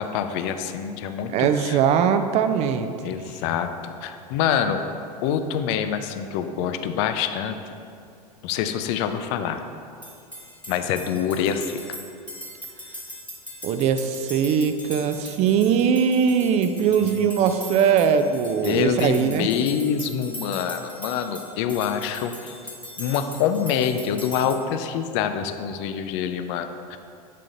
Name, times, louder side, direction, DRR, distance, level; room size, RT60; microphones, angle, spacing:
voice 1, 0.0-1.8 3.0-4.8 5.2-7.6 8.4-9.6 10.7-12.0 17.0-17.1 18.6-22.6 23.0-27.0, left 8 dB, 45° left, 8 dB, 0.4 m, -26 dB
voice 2, 1.3-2.9 13.6-19.5, right 7 dB, 35° right, 9 dB, 0.4 m, -21 dB
sound 1, 10.0-24.6, left 1 dB, 5° left, 1.0 m, -40 dB
7.5 x 3.8 x 3.8 m, 2.4 s
figure-of-eight pair, 90°, 20 cm